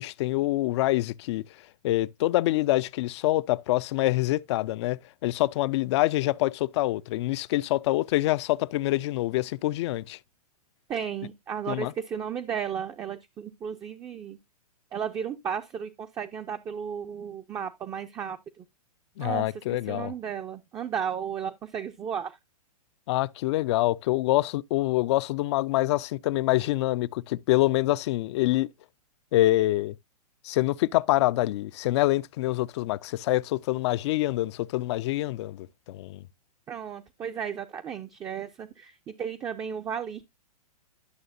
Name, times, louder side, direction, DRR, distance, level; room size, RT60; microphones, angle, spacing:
voice 1, 0.0-1.4 1.8-10.2 11.7-11.9 19.2-20.1 23.1-28.7 29.3-30.0 30.4-36.2, left 17 dB, 45° left, 0.4 m, -26 dB
voice 2, 10.9-14.4 14.9-18.6 19.2-22.4 36.7-40.2, right 8 dB, 15° right, 0.4 m, -34 dB
11.0 x 6.3 x 2.5 m
hypercardioid pair, 120°, 20 cm